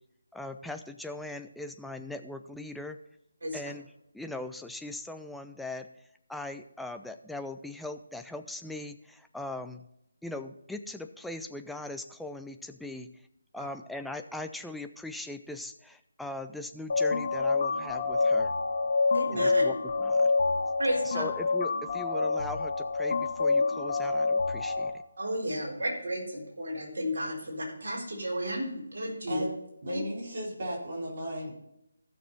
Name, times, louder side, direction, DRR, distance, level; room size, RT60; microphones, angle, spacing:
voice 1, 0.3-3.0 3.5-3.9 4.1-5.9 6.3-9.8 10.2-13.1 13.5-18.5 19.3-20.3 21.0-24.9, left 2 dB, ahead, 7 dB, 0.4 m, -40 dB
sound 1, 16.9-24.9, left 3 dB, 45° left, 1.8 m, -27 dB
voice 2, 19.1-19.6 20.8-21.2 25.2-29.4, equal, 55° right, -3 dB, 4.2 m, -33 dB
voice 3, 29.8-31.5, equal, 40° right, -4 dB, 4.0 m, -35 dB
15.0 x 6.6 x 4.1 m, 0.79 s
figure-of-eight pair, 150°, 0 cm